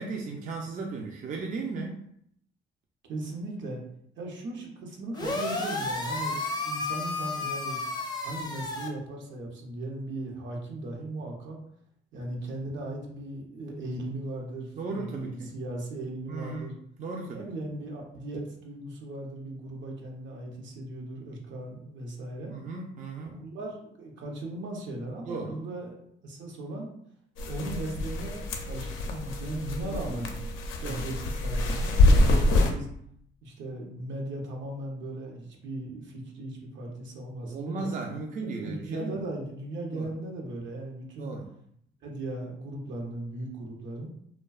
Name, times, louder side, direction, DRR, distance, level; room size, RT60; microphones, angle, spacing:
voice 1, 0.0-2.0 14.8-15.5 16.3-16.7 17.0-17.4 22.5-23.4 25.3-25.6 29.9-30.3 30.8-31.1 37.4-39.2 39.9-40.1 41.2-41.5, right 3 dB, 40° right, 0 dB, 0.4 m, -36 dB
voice 2, 3.1-3.8 4.2-6.4 6.6-7.8 8.2-11.6 12.1-16.7 17.3-22.5 23.3-26.0 26.2-26.9 27.4-30.4 30.8-32.9 33.4-37.9 38.4-41.3 42.0-44.1, right 1 dB, 70° right, 0 dB, 0.7 m, -37 dB
sound 1, 5.1-8.9, left 3 dB, 20° left, 0.5 m, -32 dB
sound 2, 27.4-32.7, left 2 dB, 90° left, 0.4 m, -25 dB
2.6 x 2.1 x 2.3 m, 0.70 s
cardioid pair, 90°, 20 cm